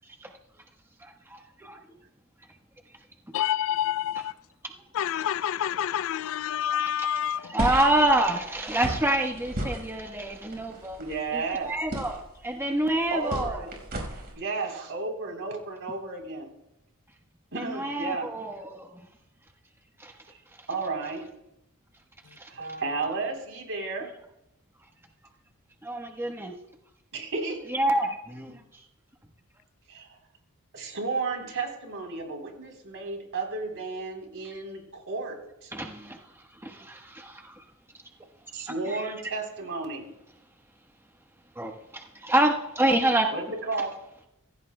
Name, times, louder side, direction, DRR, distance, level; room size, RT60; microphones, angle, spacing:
voice 1, 3.3-4.3 4.9-7.6, left 10 dB, 65° left, 0.4 m, -28 dB
voice 2, 7.5-11.0 11.3-13.6 17.6-18.9 20.0-20.1 22.4-22.5 25.8-26.5 27.7-28.6 35.7-36.2 36.6-37.5 38.6-39.0 41.6-43.3, right 1 dB, 10° right, 1.1 m, -27 dB
sound 1, 7.6-14.3, right 1 dB, 45° right, 4.9 m, -36 dB
voice 3, 11.0-11.7 13.1-13.7 14.3-16.5 17.5-18.3 20.3-20.4 20.7-21.3 22.5-24.1 27.1-27.6 28.5-28.6 29.9-30.2 30.7-35.7 38.5-40.1 43.3-44.0, right 3 dB, 65° right, 3.5 m, -33 dB
24.5 x 16.0 x 2.2 m
head